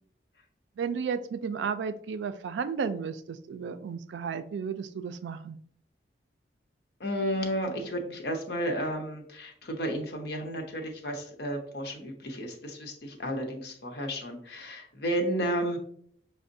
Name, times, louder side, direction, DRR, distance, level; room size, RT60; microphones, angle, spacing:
voice 1, 0.8-5.6, right 6 dB, 85° right, 11 dB, 0.3 m, -33 dB
voice 2, 7.0-15.8, equal, 70° left, 2 dB, 0.7 m, -32 dB
5.8 x 2.1 x 2.6 m, 0.62 s
head